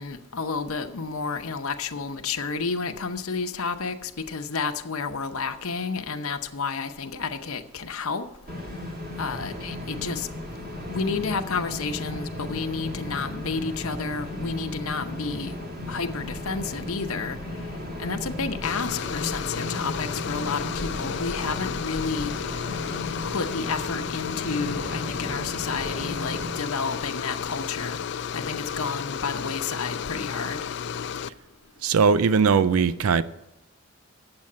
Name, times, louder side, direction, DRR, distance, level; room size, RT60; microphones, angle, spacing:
voice 1, 0.0-8.3 9.2-10.3 10.9-15.5 15.9-17.4 18.0-22.3 23.2-28.0 28.3-30.6, left 4 dB, 85° left, 0.8 m, -31 dB
sound 1, 8.5-26.5, left 1 dB, 45° right, 1.8 m, -35 dB
sound 2, 18.6-31.3, left 7 dB, 50° left, 0.3 m, -33 dB
voice 2, 31.8-33.2, right 5 dB, 85° right, 0.4 m, -20 dB
8.8 x 7.6 x 8.5 m
head